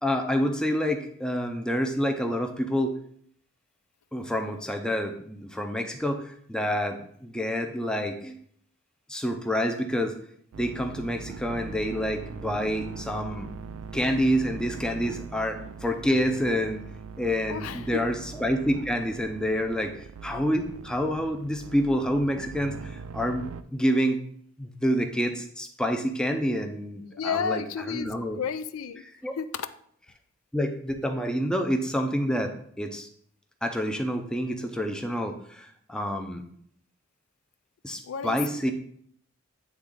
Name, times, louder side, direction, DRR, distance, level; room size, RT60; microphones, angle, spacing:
voice 1, 0.0-2.9 4.1-8.4 9.1-10.1 10.6-13.5 13.9-16.9 17.2-24.2 24.6-28.4 29.2-29.3 30.5-33.1 33.6-36.4 37.8-38.7, equal, 5° left, 4 dB, 0.5 m, -28 dB
sound 1, 10.5-23.6, right 5 dB, 80° right, 0.4 m, -41 dB
voice 2, 17.5-18.0 27.1-29.0 29.4-29.7 38.0-38.4, left 6 dB, 80° left, 12 dB, 0.4 m, -32 dB
8.4 x 3.5 x 3.7 m, 0.63 s
head